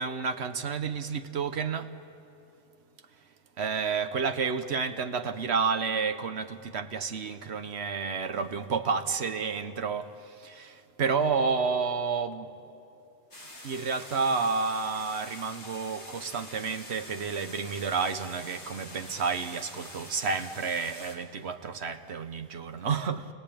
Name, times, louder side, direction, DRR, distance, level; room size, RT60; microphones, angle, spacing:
voice 1, 0.0-1.9 3.6-12.5 13.6-23.3, right 5 dB, 75° right, 1.2 m, -30 dB
sound 1, 13.3-21.1, left 1 dB, 80° left, 3.6 m, -46 dB
29.0 x 19.0 x 8.7 m
omnidirectional pair, 1.1 m